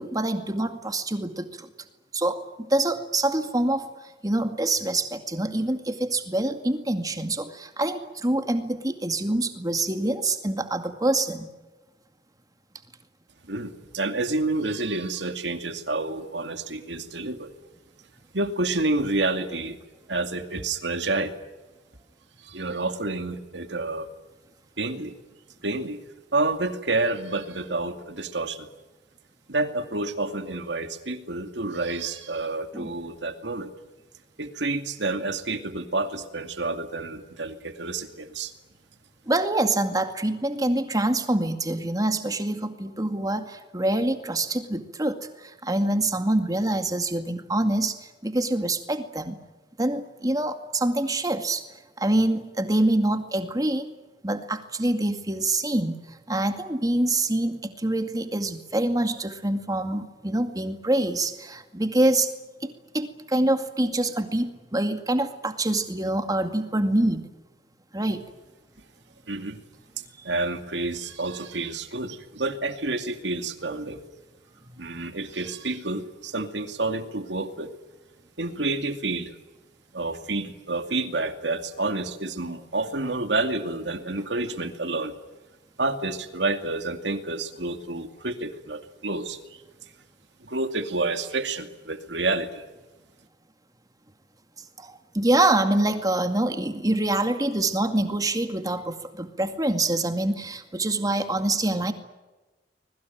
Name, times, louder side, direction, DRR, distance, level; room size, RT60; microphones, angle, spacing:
voice 1, 0.0-1.7 2.1-3.9 4.2-11.5 32.7-32.9 39.3-49.4 49.8-51.7 52.0-53.9 54.2-62.3 62.6-67.3 67.9-68.2 94.8-101.9, right 1 dB, 20° right, 7 dB, 2.2 m, -25 dB
voice 2, 13.5-17.5 18.3-19.8 20.1-21.4 22.4-24.1 24.8-25.1 25.6-26.0 26.3-28.7 29.5-33.7 34.4-38.5 69.3-69.6 70.2-74.0 74.8-77.7 78.4-79.3 79.9-85.2 85.8-89.6 90.4-92.6, right 2 dB, 70° right, 8 dB, 2.4 m, -29 dB
25.5 x 21.5 x 9.3 m, 1.2 s
head